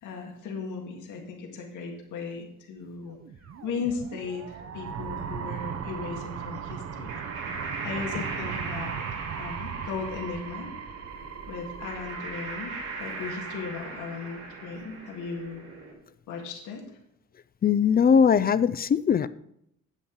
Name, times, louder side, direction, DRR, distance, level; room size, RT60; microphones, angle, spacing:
voice 1, 0.0-3.2 3.6-7.2 7.5-9.0 9.4-10.7 11.5-12.7 13.0-15.7 16.3-17.0, left 5 dB, 90° left, 2 dB, 1.8 m, -37 dB
sound 1, 3.1-14.0, right 7 dB, 55° right, 0.8 m, -38 dB
sound 2, 7.0-15.9, right 3 dB, 90° right, 4.4 m, -39 dB
voice 2, 17.6-19.3, left 7 dB, 30° left, 16 dB, 0.4 m, -20 dB
9.8 x 7.8 x 3.9 m, 0.76 s
cardioid pair, 90°, 30 cm